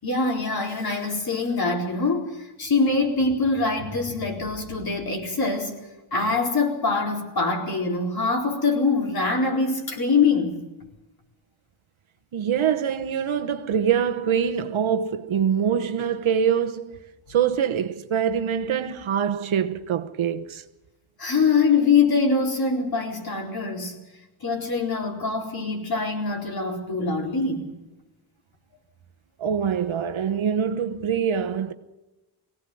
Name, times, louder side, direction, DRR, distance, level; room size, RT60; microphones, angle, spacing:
voice 1, 0.0-5.7 6.1-10.6 21.2-24.0 24.4-27.7, left 4 dB, 45° left, 4.4 m, -24 dB
voice 2, 12.3-17.0 17.3-20.6 29.4-31.7, right 8 dB, 70° right, 1.2 m, -24 dB
23.0 x 17.5 x 7.9 m
wide cardioid pair, 180°, 50 cm